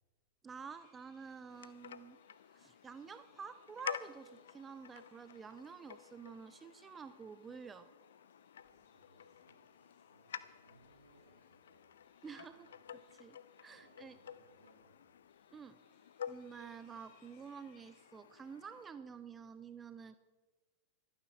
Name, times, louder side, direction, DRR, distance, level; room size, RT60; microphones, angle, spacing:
voice 1, 0.4-2.2 2.5-7.9 12.2-12.6 13.2-14.2 15.5-15.8 16.3-20.2, right 6 dB, 20° right, 12 dB, 0.6 m, -50 dB
sound 1, 0.7-18.1, left 4 dB, 40° left, 6.6 m, -76 dB
sound 2, 1.5-18.9, left 8 dB, 65° left, 0.6 m, -51 dB
voice 2, 8.6-12.8 13.3-15.2, right 2 dB, 80° right, 1 dB, 3.8 m, -69 dB
25.5 x 9.5 x 4.5 m, 1.3 s
figure-of-eight pair, 90°, 0 cm